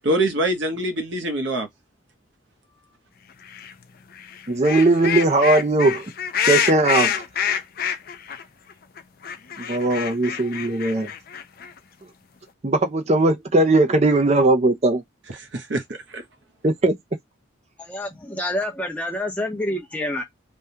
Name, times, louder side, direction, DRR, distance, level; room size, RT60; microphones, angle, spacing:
voice 1, 0.0-1.7 15.4-16.2, right 1 dB, 65° right, 0.9 m, -24 dB
sound 1, 3.5-3.7 4.2-8.4 8.7-8.8 9.0-11.8, left 9 dB, 45° left, 0.4 m, -26 dB
voice 2, 4.5-6.0 6.5-7.1 9.6-11.1 12.6-15.0 16.6-16.9, right 2 dB, 35° right, 0.5 m, -19 dB
voice 3, 17.8-20.2, left 1 dB, 5° left, 0.8 m, -27 dB
3.4 x 2.2 x 2.8 m
head